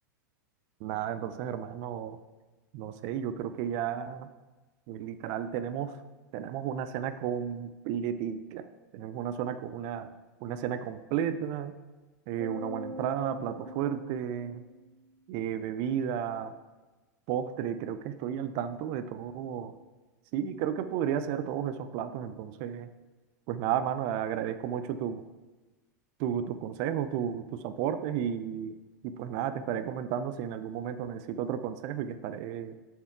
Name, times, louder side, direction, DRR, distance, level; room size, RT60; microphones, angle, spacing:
voice 1, 0.8-2.2 2.7-4.3 4.9-6.0 6.3-8.6 8.9-10.1 10.4-11.7 12.3-14.6 15.3-16.5 17.3-19.7 20.3-22.9 23.5-25.2 26.2-28.8 29.0-32.8, right 9 dB, 50° right, 11 dB, 0.4 m, -33 dB
sound 1, 12.4-14.9, equal, 80° right, 0.9 m, -43 dB
7.0 x 4.5 x 4.6 m, 1.2 s
hypercardioid pair, 95°, 10 cm